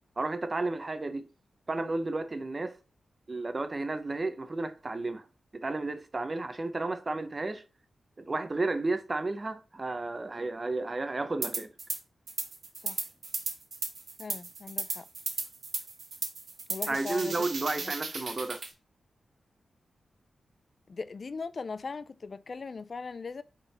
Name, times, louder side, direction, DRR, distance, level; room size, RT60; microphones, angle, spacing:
voice 1, 0.2-1.3 1.7-2.8 3.3-5.3 5.5-7.6 8.2-11.7 16.9-18.6, right 2 dB, 30° right, 0.9 m, -32 dB
sound 1, 11.4-12.0 12.3-18.7, right 4 dB, 65° right, 1.6 m, -35 dB
voice 2, 14.2-15.0 16.7-17.4 17.7-17.8 20.9-23.4, left 4 dB, 45° left, 0.5 m, -39 dB
5.7 x 4.0 x 5.6 m
wide cardioid pair, 105°, 0 cm